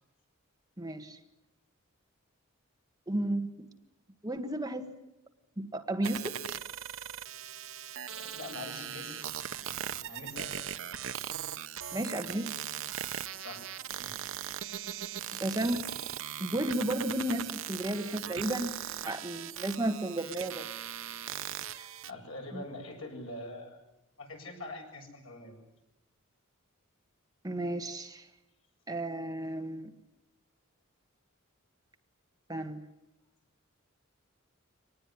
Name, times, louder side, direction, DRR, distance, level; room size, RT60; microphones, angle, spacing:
voice 1, 0.8-1.2 3.1-3.7 4.2-4.9 5.6-6.4 11.9-12.6 15.3-15.9 16.4-18.7 19.0-20.7 21.7-21.9 22.5-22.6 27.4-28.3 28.9-29.9 32.5-32.8, right 1 dB, 20° right, 6 dB, 1.7 m, -33 dB
sound 1, 6.0-22.1, right 10 dB, 65° right, 0.9 m, -39 dB
voice 2, 8.1-9.3 9.6-10.7 13.4-14.8 22.1-23.8 24.2-25.6, left 2 dB, 75° left, 2 dB, 7.7 m, -45 dB
25.0 x 19.5 x 9.9 m, 0.94 s
head